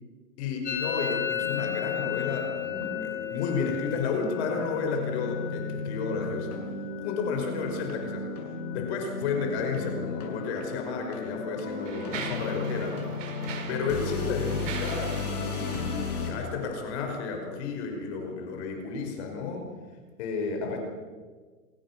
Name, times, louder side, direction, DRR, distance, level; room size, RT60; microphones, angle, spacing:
voice 1, 0.4-6.6 7.0-8.3 8.7-13.1 13.7-19.7 20.2-20.8, left 5 dB, 45° left, 3 dB, 5.5 m, -32 dB
Musical instrument, 0.6-8.3 8.5-9.1 9.4-10.0 10.2-12.3, left 9 dB, 20° left, 4.8 m, -36 dB
sound 1, 1.4-16.3, left 4 dB, 75° left, 7.2 m, -35 dB
Mechanisms, 10.5-10.6 11.3-17.1, right 6 dB, 50° right, 4.8 m, -41 dB
27.5 x 19.0 x 6.2 m, 1.5 s
hypercardioid pair, 130°, 45 cm